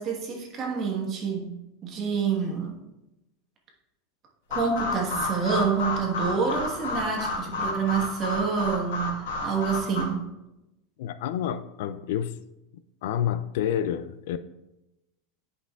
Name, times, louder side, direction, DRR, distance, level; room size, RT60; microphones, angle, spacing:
voice 1, 0.0-1.5 1.8-2.7 4.5-9.1 9.4-10.2, right 5 dB, 30° right, 0 dB, 1.3 m, -27 dB
sound 1, 4.5-10.0, left 2 dB, 90° left, 2.2 m, -31 dB
voice 2, 11.0-12.4 13.0-14.4, left 10 dB, 65° left, 13 dB, 0.3 m, -29 dB
10.0 x 5.6 x 2.4 m, 0.94 s
supercardioid pair, 165°, 0 cm